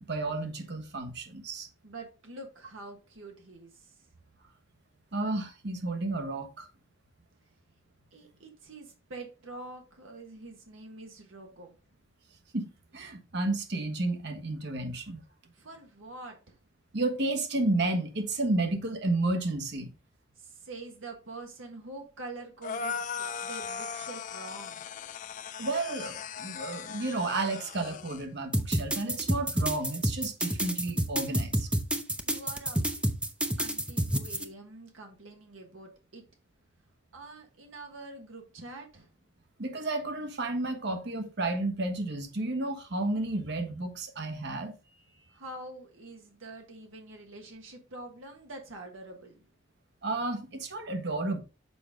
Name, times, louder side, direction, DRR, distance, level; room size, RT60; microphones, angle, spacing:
voice 1, 0.0-1.7 5.1-6.7 12.5-15.2 16.9-19.9 25.6-31.7 39.6-44.7 50.0-51.4, right 2 dB, 60° right, 1.3 m, -32 dB
voice 2, 1.8-4.0 8.1-11.7 15.5-16.6 20.4-24.9 32.3-32.8 33.6-36.2 37.1-39.1 45.3-49.4, right 2 dB, 85° right, 1.5 m, -45 dB
sound 1, 22.6-28.2, left 6 dB, 40° left, 0.4 m, -38 dB
sound 2, 28.5-34.4, right 1 dB, 5° right, 0.6 m, -28 dB
6.9 x 5.1 x 3.6 m
head